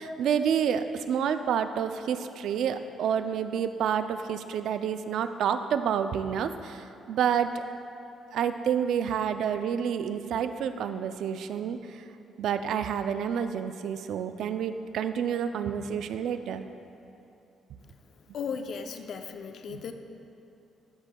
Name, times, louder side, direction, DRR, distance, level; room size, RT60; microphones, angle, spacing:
voice 1, 0.0-7.6 8.3-12.0 12.4-16.6 19.7-19.8, right 8 dB, 70° right, 10 dB, 0.3 m, -29 dB
voice 2, 18.3-19.9, left 6 dB, 55° left, 7 dB, 0.4 m, -36 dB
12.5 x 6.3 x 2.2 m, 2.7 s
cardioid pair, 160°, 0 cm